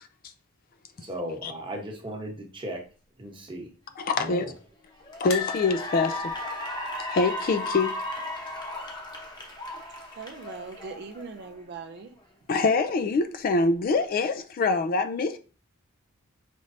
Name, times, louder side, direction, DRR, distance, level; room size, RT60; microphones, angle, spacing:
voice 1, 1.0-2.8 3.2-3.7 4.2-4.5, equal, 25° right, 0.9 m, -36 dB
voice 2, 4.0-4.5 5.2-6.3 7.0-8.0 12.5-15.4, left 3 dB, 40° left, 0.3 m, -25 dB
Cheering / Applause, 4.6-4.7 5.0-11.5, left 1 dB, 20° left, 0.8 m, -35 dB
sound 1, 5.3-8.3 8.6-8.8 9.1-9.2 10.4-10.9 11.5-11.6, left 7 dB, 65° left, 0.7 m, -39 dB
voice 3, 10.2-12.1, right 4 dB, 50° right, 0.4 m, -40 dB
5.1 x 3.2 x 2.6 m
head